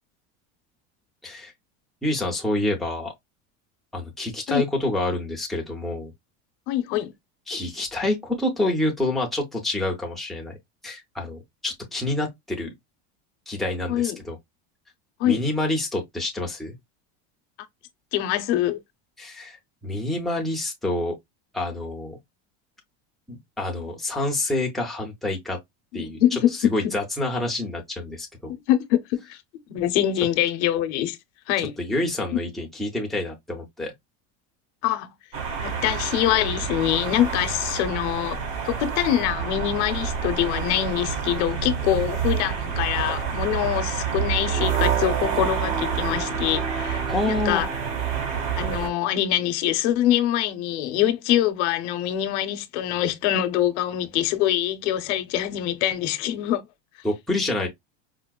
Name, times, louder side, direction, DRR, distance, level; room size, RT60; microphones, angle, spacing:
voice 1, 2.0-3.1 3.9-6.1 7.5-10.6 10.8-12.7 13.5-14.4 15.2-16.8 19.2-19.6 19.8-21.2 21.5-22.2 23.3-25.6 25.9-28.5 31.8-33.9 47.1-47.6 57.0-57.7, left 2 dB, ahead, 0.4 m, -27 dB
voice 2, 6.7-7.1 13.9-14.2 15.2-15.4 18.1-18.8 25.9-26.5 28.7-29.4 29.7-31.2 31.5-31.8 34.8-35.1 35.6-38.4 38.6-47.7 48.6-56.6, left 12 dB, 65° left, 0.7 m, -24 dB
sound 1, 35.3-48.9, right 7 dB, 80° right, 2.1 m, -28 dB
4.6 x 2.0 x 2.2 m
cardioid pair, 175°, 36 cm